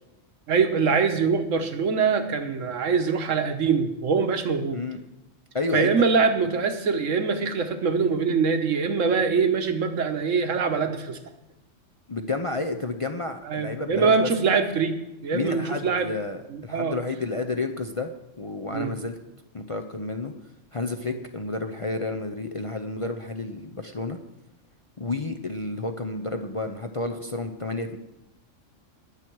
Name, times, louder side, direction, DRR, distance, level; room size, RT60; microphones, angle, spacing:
voice 1, 0.5-4.8 5.7-11.2 13.4-16.1 16.5-17.0 18.7-18.9 21.1-21.2, right 5 dB, 75° right, 7 dB, 1.4 m, -23 dB
voice 2, 5.5-6.0 12.1-14.3 15.3-19.2 19.5-20.3 20.7-24.2 25.0-28.0, left 3 dB, 35° left, 5 dB, 0.6 m, -30 dB
19.5 x 7.4 x 4.7 m, 0.94 s
omnidirectional pair, 1.3 m